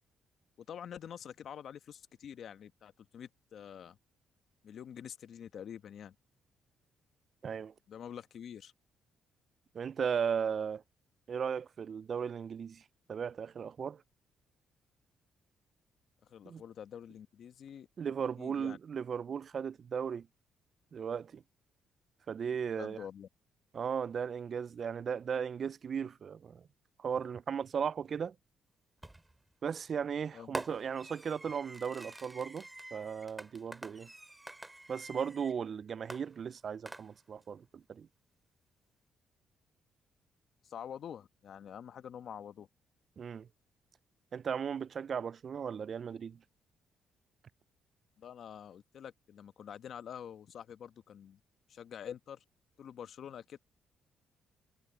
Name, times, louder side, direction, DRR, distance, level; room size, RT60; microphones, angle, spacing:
voice 1, 0.6-4.0 4.6-6.1 7.9-8.7 16.2-17.9 18.4-18.8 22.7-23.3 30.3-30.6 40.6-42.7 48.2-51.4 51.7-52.4 52.8-53.6, left 8 dB, 65° left, 1.0 m, -47 dB
voice 2, 7.4-7.7 9.7-10.8 11.3-12.8 13.1-14.0 16.5-16.6 18.0-20.3 20.9-21.4 22.3-23.0 23.7-26.6 27.0-28.3 29.6-34.1 34.9-38.1 43.2-43.5 44.3-46.4, right 7 dB, 50° right, 0.3 m, -36 dB
Fireworks, 29.0-29.4 30.5-35.6 36.1-37.4, right 2 dB, 15° right, 2.5 m, -46 dB
cardioid pair, 90°, 0 cm